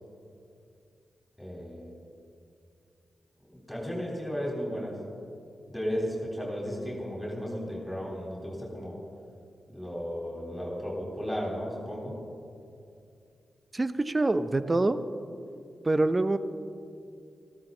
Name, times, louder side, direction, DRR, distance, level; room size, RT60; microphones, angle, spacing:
voice 1, 1.4-1.9 3.5-5.0 5.7-9.0 9.7-12.2, equal, 10° left, -3 dB, 3.7 m, -34 dB
voice 2, 13.7-15.0 15.8-16.4, right 2 dB, 30° right, 12 dB, 0.7 m, -25 dB
14.0 x 13.0 x 3.9 m, 2.5 s
supercardioid pair, 45°, 0 cm